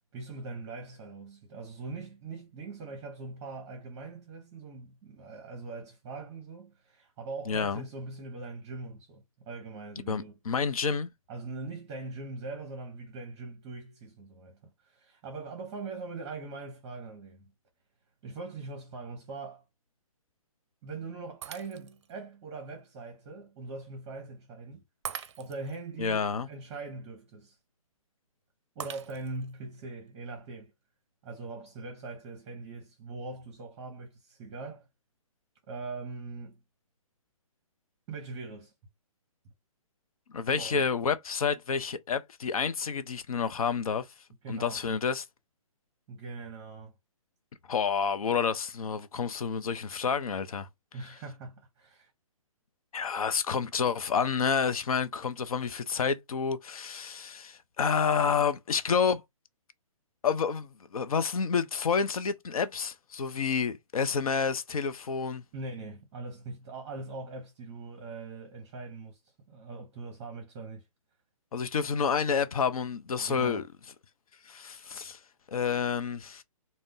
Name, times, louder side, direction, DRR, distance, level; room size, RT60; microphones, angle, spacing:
voice 1, 0.1-10.4 11.3-17.5 18.2-19.7 20.8-24.8 25.4-26.2 26.5-27.6 28.8-30.7 31.2-34.9 35.7-36.6 38.1-38.7 40.6-40.8 44.4-44.8 46.1-46.9 50.9-52.1 65.5-70.9 73.2-73.6, right 3 dB, 25° right, 0.7 m, -41 dB
voice 2, 7.5-7.8 10.1-11.1 26.0-26.5 40.3-44.1 44.5-45.3 47.7-50.7 52.9-59.2 60.2-65.4 71.5-73.7 74.5-75.2 75.5-76.4, left 6 dB, 80° left, 0.5 m, -29 dB
Shatter, 21.4-22.1 22.7-22.8 25.0-25.8 28.8-29.5, right 8 dB, 50° right, 0.5 m, -42 dB
2.5 x 2.1 x 3.6 m
hypercardioid pair, 145°, 18 cm